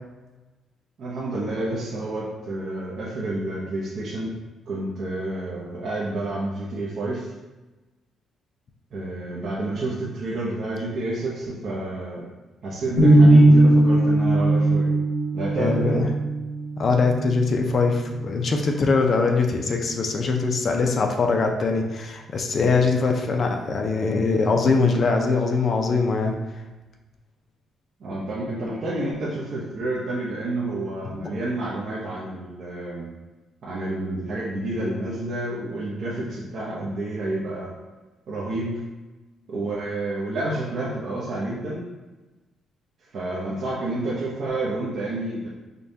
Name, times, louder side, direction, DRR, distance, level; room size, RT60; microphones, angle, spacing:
voice 1, 1.0-4.3 4.7-7.3 8.9-12.3 12.6-14.9 15.3-16.1 28.0-33.1 33.6-37.7 38.3-38.8 39.5-41.8 43.1-45.5, right 2 dB, 55° right, -7 dB, 0.7 m, -29 dB
sound 1, 13.0-19.0, right 1 dB, 70° left, 1.3 m, -19 dB
voice 2, 15.5-16.1 16.8-26.4 31.2-31.3, left 4 dB, 40° left, 3 dB, 0.5 m, -22 dB
5.2 x 2.3 x 2.7 m, 1.2 s
cardioid pair, 135°, 0 cm